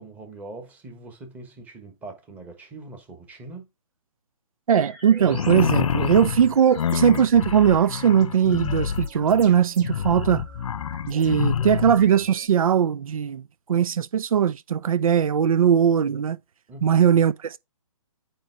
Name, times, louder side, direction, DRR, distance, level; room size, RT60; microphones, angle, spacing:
voice 1, 0.0-3.7 9.9-10.4 16.7-17.0, right 2 dB, 10° right, 1.2 m, -42 dB
sound 1, 4.7-12.5, right 4 dB, 30° right, 1.8 m, -44 dB
voice 2, 4.7-10.5 11.1-13.4 13.7-16.4 16.8-17.6, right 8 dB, 80° right, 0.5 m, -20 dB
sound 2, 5.2-12.0, left 8 dB, 75° left, 0.4 m, -27 dB
8.9 x 3.1 x 4.5 m
hypercardioid pair, 155°, 18 cm